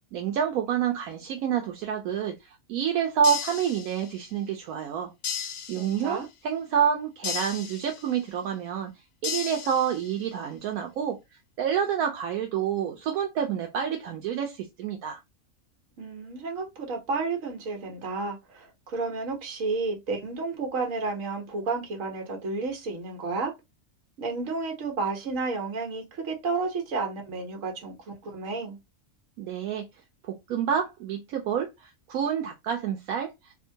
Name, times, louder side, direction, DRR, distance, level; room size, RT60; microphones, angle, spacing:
voice 1, 0.1-2.4 2.7-5.1 5.7-8.9 9.2-11.2 11.6-15.2 29.4-29.9 30.3-33.3, right 8 dB, 80° right, 1.1 m, -28 dB
sound 1, 3.2-4.3 5.2-6.3 7.2-8.3 9.2-10.3, left 7 dB, 55° left, 0.8 m, -35 dB
voice 2, 5.7-6.3 16.0-23.5 24.2-28.8, right 3 dB, 65° right, 1.4 m, -31 dB
3.5 x 2.1 x 2.7 m
omnidirectional pair, 1.5 m